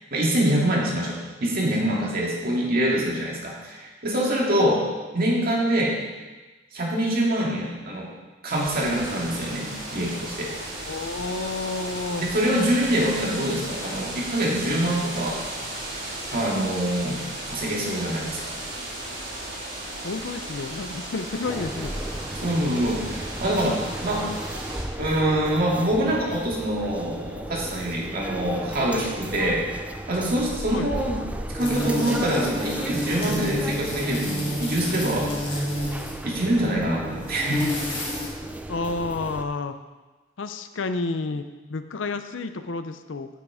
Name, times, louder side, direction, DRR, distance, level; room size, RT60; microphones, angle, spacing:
voice 1, 0.1-4.9 5.1-6.0 6.7-8.1 8.4-10.5 12.2-15.4 16.3-18.6 22.4-24.3 25.0-29.6 30.1-31.2 31.5-35.6 36.2-37.7, right 1 dB, 50° right, -3 dB, 2.2 m, -25 dB
sound 1, 8.5-24.8, right 1 dB, 70° right, 3.7 m, -35 dB
voice 2, 10.9-12.2 20.0-21.9 30.7-30.9 38.7-39.8 40.4-41.4 41.7-43.3, left 3 dB, 75° left, 9 dB, 0.6 m, -30 dB
sound 2, 21.4-39.4, right 1 dB, 5° right, 0.5 m, -35 dB
sound 3, 31.6-36.2 37.1-38.3, left 1 dB, 30° left, 2.5 m, -29 dB
8.6 x 8.3 x 4.9 m, 1.2 s
head